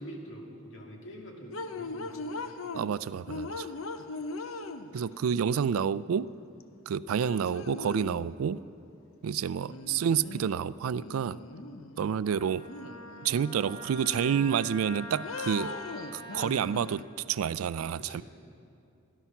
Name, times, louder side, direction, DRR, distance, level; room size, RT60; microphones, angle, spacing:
voice 1, 0.0-2.2 9.3-9.4 17.9-18.2, equal, 60° left, 0 dB, 2.2 m, -45 dB
sound 1, 1.5-2.9 3.3-5.2 6.6-6.7 7.2-8.3 9.6-10.6 10.9-12.2 12.7-13.5 13.9-14.8 15.2-17.0, left 3 dB, 80° left, 0.7 m, -40 dB
voice 2, 2.7-3.7 4.9-6.3 6.9-8.6 9.2-11.4 12.0-12.7 13.2-15.8 16.1-18.2, right 8 dB, 85° right, 18 dB, 0.3 m, -29 dB
Wind instrument woodwind instrument, 12.2-16.5, left 1 dB, 25° left, 2.4 m, -44 dB
17.0 x 11.0 x 5.9 m, 2.6 s
head